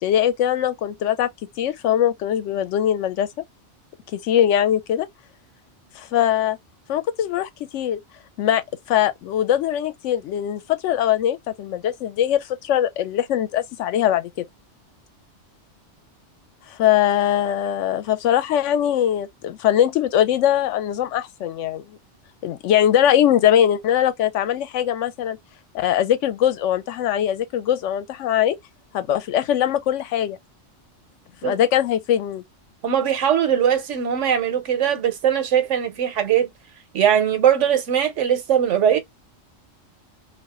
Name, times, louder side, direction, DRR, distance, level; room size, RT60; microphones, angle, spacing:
voice 1, 0.0-1.3 1.6-3.3 4.1-5.1 6.0-6.6 6.9-8.0 8.4-14.3 16.7-22.0 22.4-25.4 25.7-28.6 28.9-30.4 31.4-32.4, left 10 dB, 85° left, 0.9 m, -21 dB
voice 2, 32.8-36.5 36.9-39.0, right 9 dB, 85° right, 1.1 m, -20 dB
2.4 x 2.1 x 3.5 m
omnidirectional pair, 1.2 m